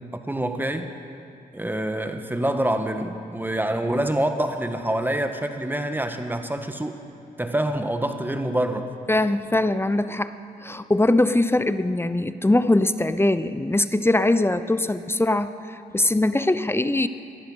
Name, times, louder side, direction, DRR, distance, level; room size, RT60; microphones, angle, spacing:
voice 1, 0.1-0.9 1.5-7.0 7.4-8.9, right 1 dB, 10° right, 7 dB, 1.4 m, -26 dB
voice 2, 9.1-17.1, left 2 dB, 15° left, 12 dB, 0.7 m, -22 dB
18.5 x 11.5 x 5.6 m, 2.6 s
supercardioid pair, 45°, 18 cm